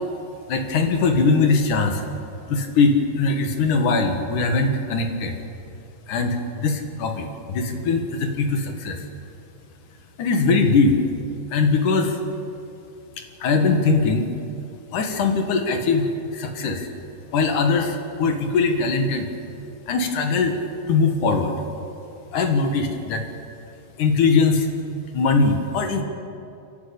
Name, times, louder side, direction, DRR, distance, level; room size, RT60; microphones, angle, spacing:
voice 1, 0.5-2.0 2.5-5.4 6.1-9.0 10.2-11.0 11.5-12.1 13.4-14.3 14.9-16.9 17.3-19.3 19.9-20.5 20.9-21.5 22.3-23.2 24.0-24.7 25.1-26.0, left 4 dB, 65° left, 5 dB, 3.1 m, -21 dB
28.5 x 11.5 x 8.6 m, 2.6 s
omnidirectional pair, 4.0 m